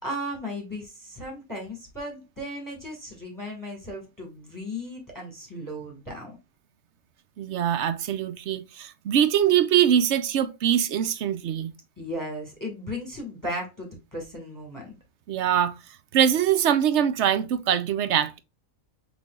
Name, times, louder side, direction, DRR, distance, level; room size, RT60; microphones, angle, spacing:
voice 1, 0.0-6.4 12.0-14.9, equal, 15° left, 1.6 m, -36 dB
voice 2, 7.4-11.7 15.3-15.7 16.1-18.4, right 9 dB, 65° right, 0.8 m, -23 dB
6.1 x 3.5 x 2.3 m
omnidirectional pair, 1.5 m